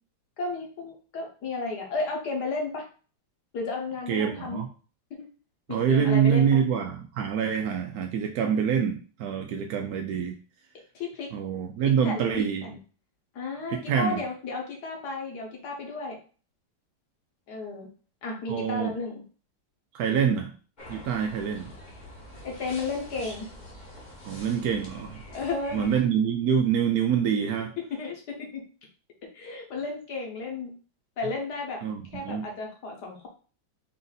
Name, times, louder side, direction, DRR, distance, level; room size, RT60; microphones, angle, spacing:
voice 1, 0.4-2.8 3.5-4.6 5.2-5.3 5.7-6.6 10.9-11.3 12.0-12.8 13.3-16.2 17.5-17.9 18.2-19.2 22.4-23.5 25.3-25.9 27.9-28.6 29.3-30.7 31.2-31.8 32.1-33.3, left 3 dB, 60° left, 1 dB, 1.4 m, -33 dB
voice 2, 4.1-4.7 5.7-10.3 11.3-12.7 13.7-14.2 18.5-18.9 19.9-20.5 20.9-21.7 24.2-25.2 25.7-27.7 31.8-32.5, right 7 dB, 75° right, 3 dB, 0.8 m, -26 dB
sound 1, 20.8-26.0, left 1 dB, 30° left, 0.9 m, -45 dB
4.4 x 2.6 x 3.9 m, 0.38 s
omnidirectional pair, 2.0 m